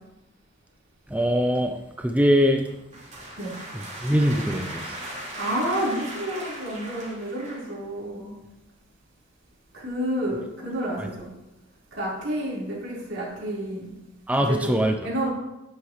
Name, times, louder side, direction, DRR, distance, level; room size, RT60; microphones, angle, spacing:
voice 1, 1.1-2.7 3.7-5.0 11.0-11.1 14.3-14.9, equal, 5° right, 4 dB, 0.5 m, -22 dB
sound 1, 2.6-7.8, right 1 dB, 35° right, 3.5 m, -38 dB
voice 2, 5.4-8.4 9.7-11.3 11.9-13.9 14.4-14.7 15.0-15.3, right 1 dB, 75° right, -6 dB, 4.2 m, -30 dB
11.0 x 9.8 x 3.1 m, 0.94 s
head